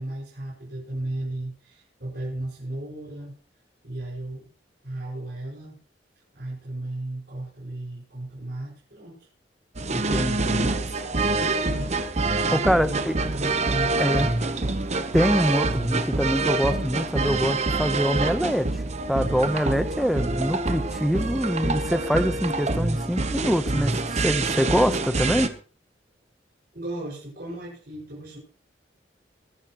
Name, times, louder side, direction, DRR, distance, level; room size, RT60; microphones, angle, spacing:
voice 1, 0.0-3.3 3.8-4.5 4.8-5.8 6.3-9.3 9.8-11.9 12.4-14.0 26.7-28.4, right 1 dB, 60° right, -5 dB, 5.8 m, -35 dB
sound 1, 9.8-25.5, right 3 dB, 40° right, 1.0 m, -26 dB
voice 2, 9.9-10.7 12.5-13.2 14.0-14.3 15.1-18.8 19.1-25.5, equal, ahead, 10 dB, 0.9 m, -24 dB
21.5 x 11.0 x 3.1 m, 0.40 s
head